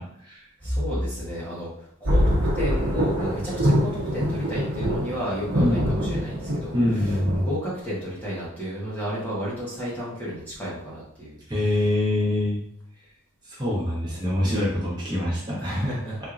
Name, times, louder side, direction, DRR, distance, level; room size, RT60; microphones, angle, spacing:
voice 1, 0.0-0.4 5.6-5.9 6.7-7.5 11.5-12.6 13.5-16.0, left 1 dB, 20° right, -7 dB, 1.2 m, -25 dB
voice 2, 0.6-11.4 11.7-11.8 15.6-16.2, equal, 10° left, -8 dB, 1.0 m, -33 dB
sound 1, 2.1-7.4, equal, 70° right, 1.0 m, -24 dB
4.4 x 2.7 x 2.4 m, 0.67 s
head